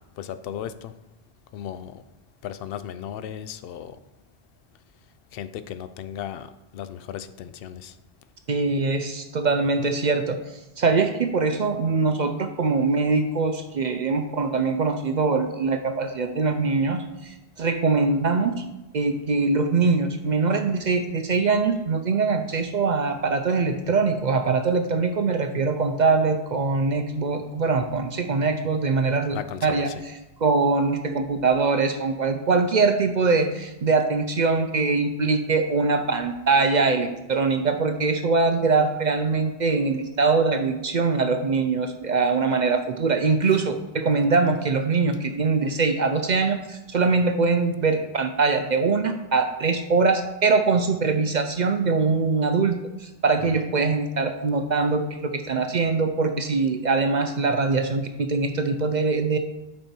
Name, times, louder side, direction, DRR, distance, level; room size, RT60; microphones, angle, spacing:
voice 1, 1.5-1.9 2.4-3.9 5.4-6.4 6.8-7.8, left 9 dB, 70° left, 12 dB, 0.7 m, -35 dB
voice 2, 8.5-10.4 10.8-18.6 18.9-59.4, right 4 dB, 50° right, 7 dB, 0.6 m, -23 dB
8.3 x 5.5 x 4.4 m, 1.0 s
omnidirectional pair, 1.1 m